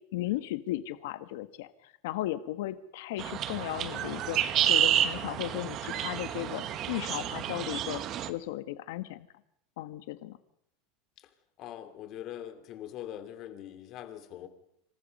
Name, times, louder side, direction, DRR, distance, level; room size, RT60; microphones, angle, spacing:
voice 1, 0.1-4.4 4.7-8.0 8.3-9.3 9.8-10.4, left 15 dB, 75° left, 11 dB, 1.5 m, -36 dB
sound 1, 3.2-8.3, right 11 dB, 35° right, 1.4 m, -30 dB
voice 2, 11.6-14.5, left 11 dB, 40° left, 8 dB, 3.1 m, -42 dB
27.5 x 26.0 x 5.5 m, 0.76 s
supercardioid pair, 160°, 0 cm